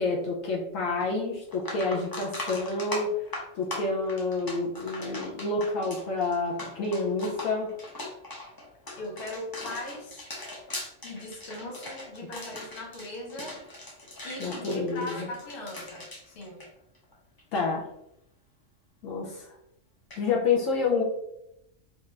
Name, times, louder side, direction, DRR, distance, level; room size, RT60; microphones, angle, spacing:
voice 1, 0.0-3.1 3.5-7.7 14.4-15.2 17.5-17.9 19.0-19.5 20.2-21.0, left 3 dB, 75° left, -1 dB, 1.0 m, -28 dB
sound 1, 1.0-1.1 1.5-17.1 17.4-17.7 20.1-20.2, left 2 dB, 35° left, 0.3 m, -40 dB
voice 2, 9.0-10.2 11.0-13.6 14.2-16.6, left 1 dB, 50° left, -1 dB, 1.0 m, -39 dB
3.2 x 2.4 x 3.1 m, 0.79 s
omnidirectional pair, 1.4 m